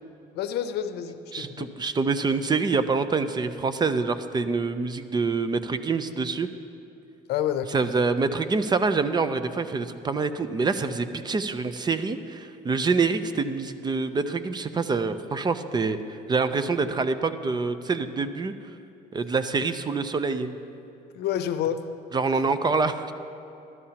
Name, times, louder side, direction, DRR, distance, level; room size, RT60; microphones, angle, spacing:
voice 1, 0.3-1.7 7.3-7.8 21.1-21.8, left 10 dB, 80° left, 10 dB, 0.6 m, -28 dB
voice 2, 1.3-6.5 7.7-18.5 19.1-20.5 22.1-23.1, right 4 dB, 25° right, 11 dB, 0.5 m, -26 dB
15.5 x 12.0 x 2.9 m, 2.8 s
cardioid pair, 110°, 17 cm